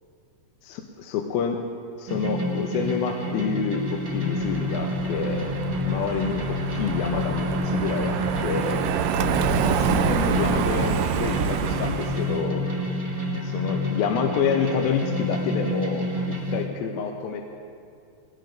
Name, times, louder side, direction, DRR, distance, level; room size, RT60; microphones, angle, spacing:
voice 1, 0.6-1.6 2.0-5.5 5.9-8.8 9.6-12.7 13.4-16.1 16.5-17.4, left 6 dB, 85° left, 2 dB, 2.6 m, -28 dB
sound 1, 2.1-16.7, left 1 dB, 45° right, 0.7 m, -29 dB
Car passing by, 3.9-12.4, right 8 dB, 80° right, 2.0 m, -27 dB
21.5 x 18.0 x 2.6 m, 2.4 s
omnidirectional pair, 4.2 m